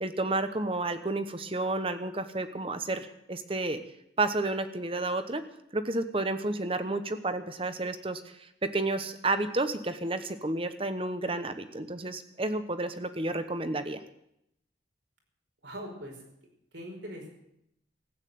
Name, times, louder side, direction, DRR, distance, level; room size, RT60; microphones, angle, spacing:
voice 1, 0.0-3.8 4.2-5.4 5.7-8.2 8.6-14.0, right 2 dB, 30° right, 10 dB, 1.0 m, -31 dB
voice 2, 15.6-16.2 16.7-17.3, equal, 85° right, 1 dB, 5.1 m, -41 dB
15.0 x 9.0 x 9.4 m, 0.78 s
head